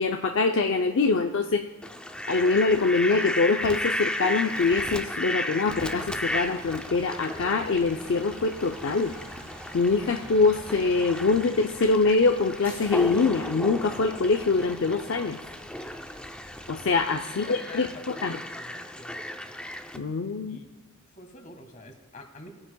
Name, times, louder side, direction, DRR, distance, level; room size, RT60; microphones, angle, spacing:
voice 1, 0.0-1.6 2.3-9.1 9.7-15.4 16.7-17.9 18.2-18.4 19.9-20.6, left 4 dB, 65° left, 4 dB, 0.5 m, -24 dB
Fowl, 1.8-20.0, left 1 dB, 5° left, 0.5 m, -35 dB
sound 1, 5.7-17.0, right 1 dB, 10° right, 1.6 m, -47 dB
voice 2, 17.3-18.0 18.3-19.2 20.4-20.7 21.2-22.5, left 2 dB, 40° left, 5 dB, 1.6 m, -46 dB
19.0 x 9.6 x 2.3 m, 1.3 s
head